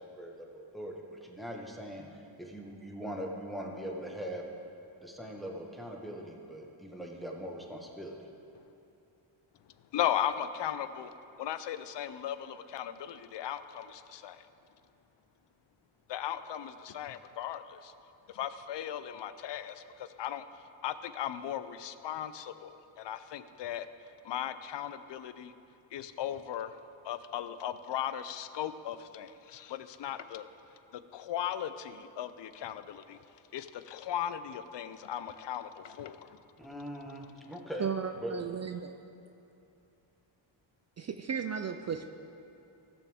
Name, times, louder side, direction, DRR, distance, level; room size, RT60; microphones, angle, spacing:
voice 1, 0.0-4.4 5.0-8.2 36.6-37.9 38.2-38.3 38.7-38.8, equal, ahead, -1 dB, 1.4 m, -41 dB
voice 2, 9.9-11.1 11.4-14.5 16.1-17.9 18.3-20.4 20.8-23.9 24.2-25.5 25.9-26.8 27.0-30.4 30.9-33.2 33.5-36.4, left 10 dB, 60° left, 12 dB, 0.6 m, -37 dB
voice 3, 37.8-39.0 41.0-42.1, right 7 dB, 35° right, 7 dB, 0.4 m, -35 dB
16.0 x 7.0 x 3.6 m, 2.8 s
cardioid pair, 80°, 49 cm